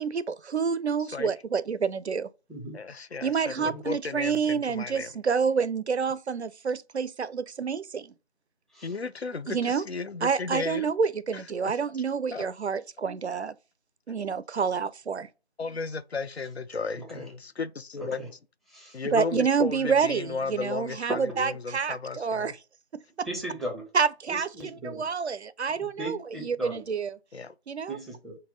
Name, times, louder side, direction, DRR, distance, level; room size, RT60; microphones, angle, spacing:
voice 1, 0.0-2.3 3.2-8.1 9.5-9.8 10.2-13.5 14.1-15.3 19.1-22.5 22.9-23.3 23.9-27.2 27.7-28.0, right 6 dB, 90° right, 0.5 m, -28 dB
voice 2, 1.0-1.3 2.7-5.1 8.8-10.9 11.3-11.7 12.3-12.4 15.6-18.2 18.9-22.5 27.3-27.5, left 4 dB, 75° left, 0.5 m, -34 dB
voice 3, 2.5-2.8 3.6-3.8 8.7-8.9 17.0-17.3 18.0-18.3 18.7-19.0 23.2-23.9 24.3-25.1 25.8-26.8 27.9-28.4, right 1 dB, ahead, 0.7 m, -38 dB
5.3 x 2.1 x 3.8 m
figure-of-eight pair, 180°, 32 cm